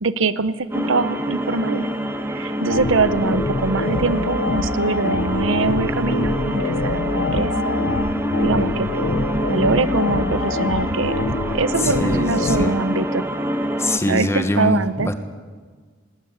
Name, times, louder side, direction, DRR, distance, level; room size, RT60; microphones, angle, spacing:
voice 1, 0.0-1.9 2.3-7.8 8.4-9.1 9.5-11.3 11.5-13.3 14.1-15.1, right 3 dB, 80° right, 14 dB, 0.9 m, -23 dB
sound 1, 0.7-14.0, equal, 10° right, 1.4 m, -26 dB
sound 2, 2.7-12.7, left 3 dB, 70° left, 0.8 m, -25 dB
voice 2, 11.8-12.8 13.8-15.1, left 1 dB, 15° left, 8 dB, 1.5 m, -23 dB
19.0 x 19.0 x 8.2 m, 1.5 s
head